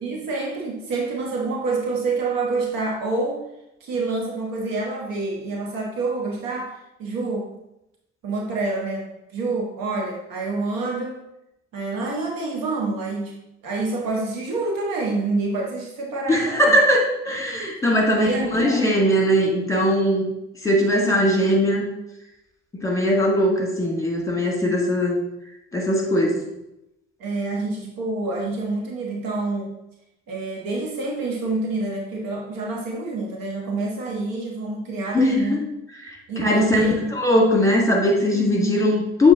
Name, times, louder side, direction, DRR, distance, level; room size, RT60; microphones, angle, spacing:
voice 1, 0.0-3.4 3.8-7.5 8.2-11.2 11.7-13.4 13.6-16.8 18.0-18.9 24.6-24.8 27.2-29.7 30.3-35.6 36.3-37.1 38.3-38.9, right 3 dB, 55° right, -1 dB, 1.4 m, -27 dB
voice 2, 16.3-20.2 20.6-21.8 22.7-25.2 25.7-26.4 35.1-35.6 36.0-39.3, left 1 dB, 10° left, -1 dB, 2.1 m, -20 dB
7.2 x 3.5 x 3.8 m, 0.87 s
figure-of-eight pair, 50°, 40 cm